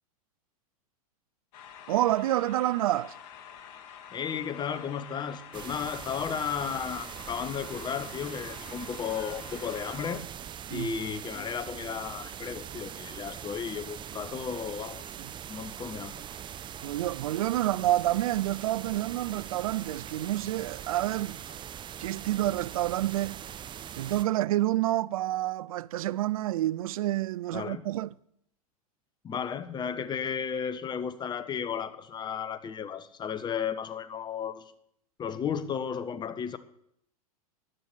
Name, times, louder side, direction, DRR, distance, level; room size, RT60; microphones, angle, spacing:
sound 1, 1.5-10.2, left 8 dB, 50° left, 2.0 m, -47 dB
voice 1, 1.9-3.2 10.7-10.9 15.2-15.3 16.8-21.4 22.0-23.4 24.0-28.1, right 14 dB, 65° right, 0.5 m, -28 dB
voice 2, 4.1-10.2 10.7-15.1 15.5-16.2 27.5-27.8 29.2-34.7 35.2-36.6, left 7 dB, 20° left, 1.1 m, -34 dB
sound 2, 5.5-24.2, right 9 dB, 25° right, 0.8 m, -42 dB
14.5 x 11.0 x 6.2 m
hypercardioid pair, 100°, 19 cm